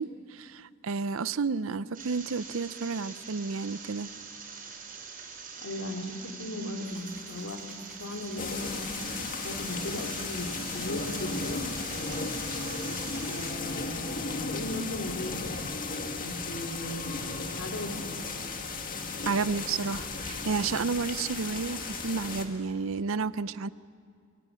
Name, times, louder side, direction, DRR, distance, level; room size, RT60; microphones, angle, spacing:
voice 1, 0.0-4.1 19.3-23.7, right 4 dB, 70° right, 16 dB, 0.6 m, -31 dB
sound 1, 1.9-13.5, right 5 dB, 40° right, 5.8 m, -44 dB
voice 2, 5.6-7.6 8.0-10.5 10.7-11.6 12.8-13.0 13.3-14.2 14.5-15.8 16.2-17.2 17.6-18.4, left 1 dB, 75° left, 3 dB, 2.7 m, -37 dB
sound 2, 6.8-13.8, right 1 dB, 5° right, 5.2 m, -52 dB
sound 3, 8.4-22.4, left 3 dB, 40° left, 2.1 m, -35 dB
23.5 x 17.5 x 9.8 m, 2.3 s
head